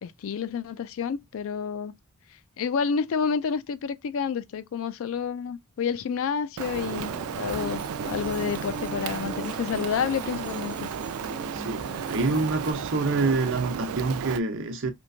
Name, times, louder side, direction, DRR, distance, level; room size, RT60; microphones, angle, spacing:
voice 1, 0.0-1.9 2.6-10.9, left 6 dB, 60° left, 0.3 m, -29 dB
Rain, 6.6-14.4, right 7 dB, 80° right, 0.4 m, -34 dB
sound 1, 6.7-12.7, right 1 dB, 20° right, 0.9 m, -39 dB
voice 2, 11.5-14.9, right 3 dB, 55° right, 0.7 m, -26 dB
3.2 x 3.0 x 2.6 m
head